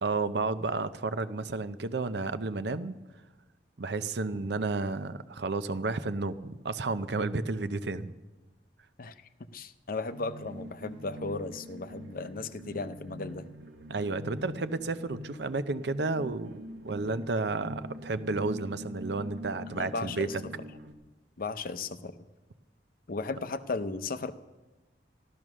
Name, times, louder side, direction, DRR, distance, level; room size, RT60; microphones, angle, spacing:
voice 1, 0.0-3.0 3.8-8.1 13.9-20.4, right 3 dB, 70° right, 13 dB, 0.7 m, -32 dB
voice 2, 9.0-13.5 19.7-20.4 21.4-22.2 23.1-24.3, left 3 dB, 55° left, 12 dB, 0.7 m, -36 dB
sound 1, 10.1-20.9, left 1 dB, 85° right, 1.4 m, -44 dB
14.0 x 12.5 x 6.3 m, 1.1 s
head